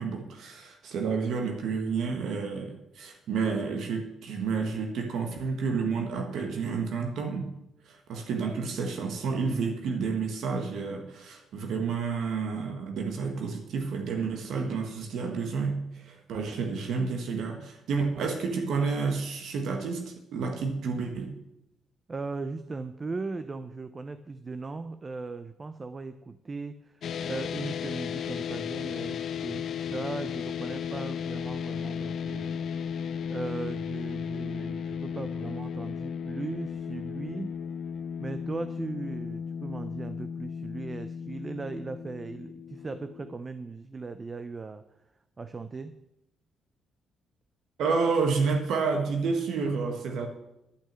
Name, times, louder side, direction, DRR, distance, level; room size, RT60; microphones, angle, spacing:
voice 1, 0.0-7.5 7.8-21.3 47.8-50.3, right 5 dB, 75° right, 4 dB, 1.5 m, -30 dB
voice 2, 22.1-32.6 33.3-37.6 38.2-44.8 45.4-45.9, right 3 dB, 30° right, 11 dB, 0.6 m, -38 dB
sound 1, 27.0-43.4, left 7 dB, 65° left, 0.5 m, -35 dB
11.5 x 6.1 x 7.5 m, 0.88 s
cardioid pair, 90°, 0 cm